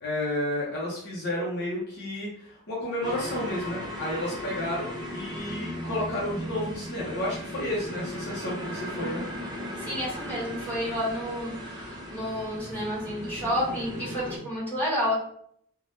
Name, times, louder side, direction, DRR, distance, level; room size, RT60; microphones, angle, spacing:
voice 1, 0.0-9.2, left 1 dB, 45° left, -5 dB, 0.7 m, -31 dB
sound 1, 3.0-14.4, left 1 dB, 20° right, 0.5 m, -37 dB
voice 2, 9.8-15.1, equal, 10° left, -7 dB, 1.3 m, -30 dB
3.3 x 2.2 x 2.6 m, 0.65 s
head